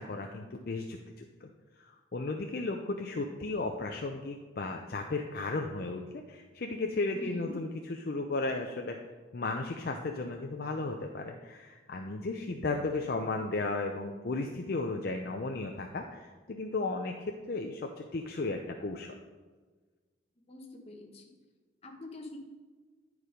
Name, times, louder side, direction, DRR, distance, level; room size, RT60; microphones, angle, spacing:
voice 1, 0.0-1.5 1.8-7.7 8.0-9.0 9.3-19.2, left 3 dB, 55° left, 3 dB, 0.5 m, -35 dB
voice 2, 7.1-7.6 20.5-21.2 21.8-22.4, left 1 dB, 35° left, 2 dB, 1.1 m, -44 dB
9.7 x 4.8 x 5.0 m, 1.4 s
head